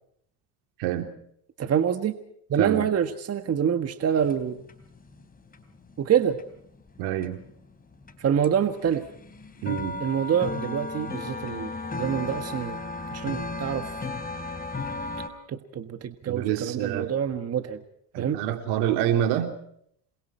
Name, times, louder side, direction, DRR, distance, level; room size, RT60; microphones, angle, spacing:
voice 1, 1.6-2.2 2.5-4.6 6.0-6.4 8.2-9.0 10.0-11.7 12.0-12.8 13.1-13.9 15.5-17.8 18.2-18.4, right 8 dB, 35° right, 8 dB, 1.6 m, -26 dB
voice 2, 2.6-2.9 7.0-7.4 9.6-10.0 16.3-17.1 18.1-19.5, right 11 dB, 75° right, 6 dB, 3.4 m, -27 dB
sound 1, 4.2-7.5 7.8-15.3, left 3 dB, 20° left, 3.5 m, -35 dB
28.0 x 22.0 x 4.4 m, 0.68 s
supercardioid pair, 105°, 40 cm